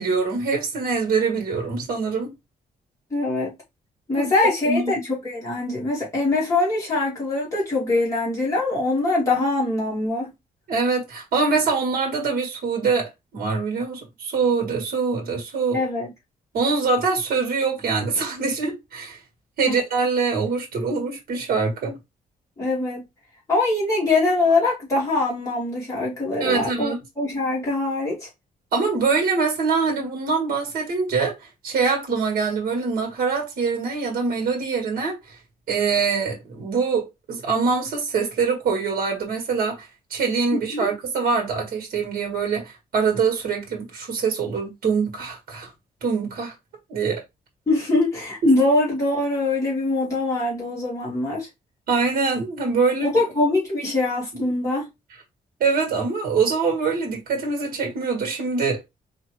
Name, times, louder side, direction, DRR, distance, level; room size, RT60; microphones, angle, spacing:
voice 1, 0.0-2.3 4.2-4.3 4.6-4.9 10.7-15.8 16.5-19.2 19.6-22.0 26.4-27.0 28.7-35.2 35.7-45.7 46.0-46.5 46.9-47.2 48.4-48.5 51.9-53.1 55.6-58.8, right 4 dB, 65° right, 1.4 m, -24 dB
voice 2, 3.1-3.5 4.1-10.3 15.7-16.1 19.6-19.8 22.6-23.0 23.5-28.3 40.5-40.9 47.7-51.5 53.0-54.9, left 2 dB, 20° left, 2.3 m, -23 dB
4.2 x 2.8 x 3.0 m
wide cardioid pair, 170°, 16 cm